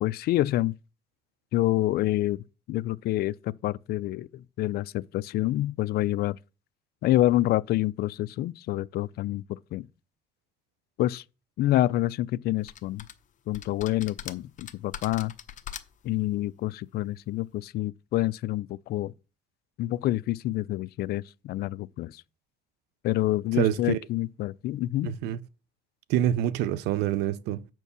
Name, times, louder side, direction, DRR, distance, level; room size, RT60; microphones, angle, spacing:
voice 1, 0.0-0.7 1.5-2.4 2.7-6.4 7.0-9.4 9.7-9.9 11.0-11.2 11.6-13.0 13.5-15.3 16.0-19.1 19.8-22.2 23.0-25.2, left 15 dB, 65° left, 0.4 m, -27 dB
sound 1, 12.7-13.1 13.5-16.1, left 9 dB, 50° left, 0.9 m, -41 dB
voice 2, 23.6-24.0 25.0-25.4 26.1-27.7, right 11 dB, 90° right, 0.5 m, -26 dB
8.2 x 4.6 x 6.8 m
cardioid pair, 110°, 17 cm